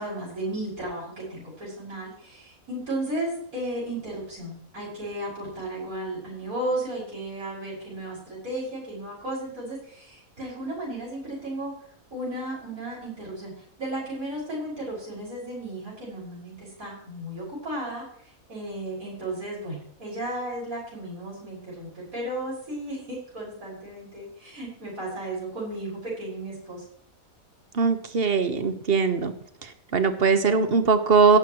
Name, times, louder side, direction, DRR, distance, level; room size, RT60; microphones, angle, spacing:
voice 1, 0.0-11.7 12.1-26.8, right 1 dB, 75° right, -5 dB, 6.3 m, -34 dB
voice 2, 27.7-29.3 29.9-31.4, right 5 dB, 45° right, 9 dB, 1.3 m, -20 dB
17.0 x 11.0 x 3.1 m, 0.65 s
omnidirectional pair, 1.5 m